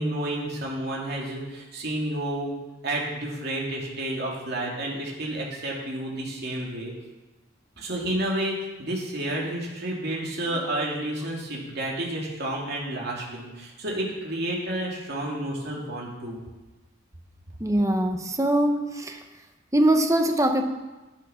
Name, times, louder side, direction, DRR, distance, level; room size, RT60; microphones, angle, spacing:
voice 1, 0.0-2.5 2.8-6.9 7.8-16.4, right 1 dB, 55° right, -2 dB, 2.9 m, -30 dB
voice 2, 17.6-19.2 19.7-20.6, right 1 dB, 15° right, 5 dB, 1.0 m, -22 dB
11.0 x 10.0 x 5.7 m, 1.1 s
head